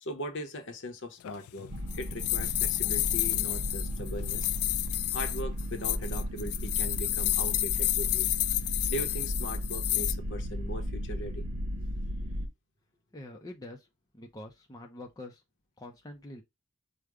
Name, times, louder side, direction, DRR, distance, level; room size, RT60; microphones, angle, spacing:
voice 1, 0.0-1.7 1.9-4.5 5.1-8.3 8.9-11.4, equal, 55° left, 0.9 m, -39 dB
sound 1, 1.2-10.1, left 16 dB, 75° left, 0.3 m, -30 dB
sound 2, 1.7-12.5, equal, 75° right, 1.2 m, -35 dB
voice 2, 13.1-13.9 14.1-15.4 15.8-16.4, left 1 dB, 15° left, 0.6 m, -45 dB
5.0 x 2.2 x 4.7 m
head